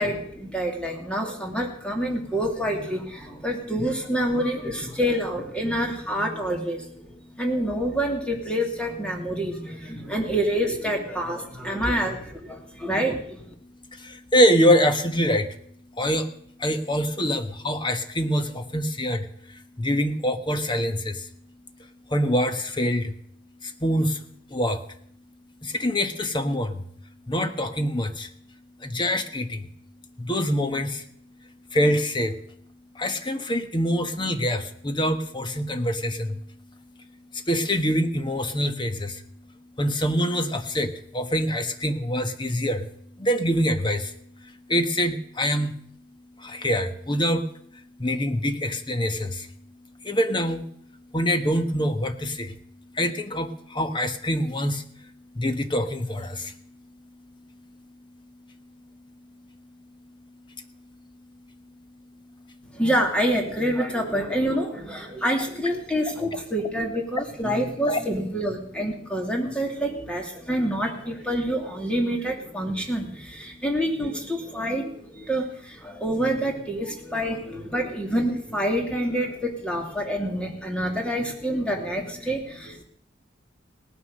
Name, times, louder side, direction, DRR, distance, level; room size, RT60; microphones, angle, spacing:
voice 1, 0.0-7.1 7.4-13.4 62.7-82.8, equal, 5° left, 1 dB, 2.8 m, -27 dB
voice 2, 14.3-15.5 16.0-16.2 16.6-19.2 19.8-21.1 22.1-23.0 23.8-24.1 24.5-24.8 25.8-26.7 27.3-28.3 28.8-29.6 30.2-30.9 31.7-32.3 33.0-36.3 37.5-39.1 39.8-40.9 41.1-42.8 43.2-44.0 44.7-45.7 46.5-47.4 48.0-49.3 50.1-50.6 51.1-52.5 53.0-53.5 53.7-54.8 55.4-56.4 67.9-68.0, equal, 25° left, 8 dB, 1.3 m, -24 dB
18.0 x 9.7 x 6.6 m, 0.66 s
head